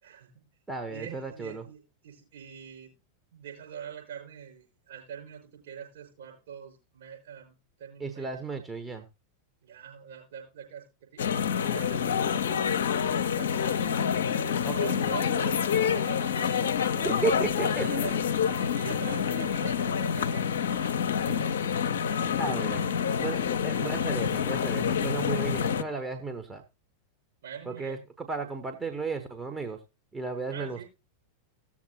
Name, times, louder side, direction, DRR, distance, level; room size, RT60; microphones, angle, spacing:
voice 1, 0.0-0.4 0.9-2.9 3.3-7.5 7.8-8.5 9.6-14.4 14.8-17.3 17.6-18.2 18.4-21.4 22.1-22.4 22.7-22.8 27.4-28.0 30.5-30.9, right 8 dB, 55° right, 0 dB, 5.9 m, -44 dB
voice 2, 0.7-1.6 8.0-9.1 14.6-15.0 17.0-17.9 21.2-21.5 22.4-22.9 23.2-26.6 27.7-29.8 30.1-30.8, right 4 dB, 10° right, 5 dB, 1.0 m, -34 dB
sound 1, 11.2-25.8, left 7 dB, 60° left, 0.6 m, -27 dB
17.0 x 7.3 x 2.9 m, 0.26 s
figure-of-eight pair, 90°, 0 cm